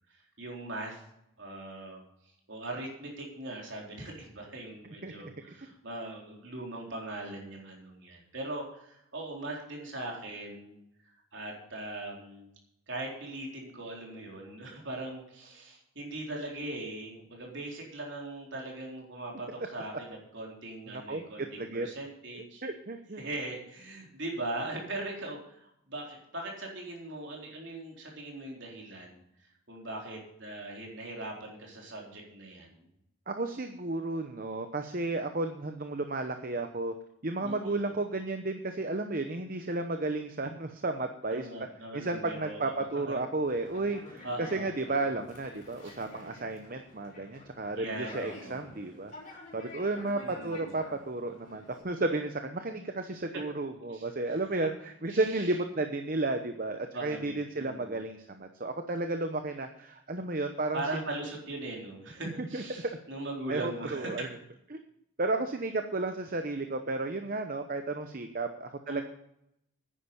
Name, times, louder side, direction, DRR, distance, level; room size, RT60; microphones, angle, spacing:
voice 1, 0.4-1.0 1.4-2.0 2.5-10.7 11.3-12.5 12.9-22.6 23.2-29.2 29.7-32.9 37.4-37.9 41.3-43.2 44.2-44.7 45.8-45.9 47.8-48.6 50.2-50.7 53.9-54.4 55.1-55.5 56.9-58.0 60.7-64.3 68.9-69.0, right 2 dB, 55° right, -1 dB, 4.0 m, -40 dB
voice 2, 20.9-21.2 21.6-21.9 22.6-23.2 33.3-36.9 37.2-41.5 41.9-60.8 62.4-62.6 63.5-64.3 64.7-64.8 65.2-69.0, right 2 dB, 40° right, 6 dB, 0.9 m, -33 dB
Conversation, 43.4-51.8, left 2 dB, 35° left, 4.9 m, -49 dB
10.5 x 10.0 x 6.9 m, 0.78 s
head